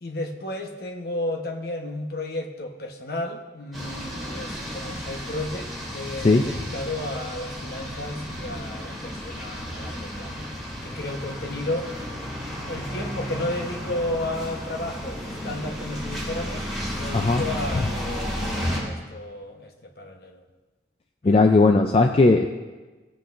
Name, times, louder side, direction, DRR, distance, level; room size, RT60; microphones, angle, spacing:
voice 1, 0.0-10.3 10.8-11.9 12.6-16.7 17.0-20.4 21.2-21.4, left 1 dB, 55° left, 2 dB, 1.0 m, -33 dB
sound 1, 3.7-18.8, equal, ahead, 2.7 m, -33 dB
voice 2, 21.2-22.5, left 3 dB, 30° left, 4 dB, 0.4 m, -17 dB
17.0 x 8.1 x 2.5 m, 1.2 s
head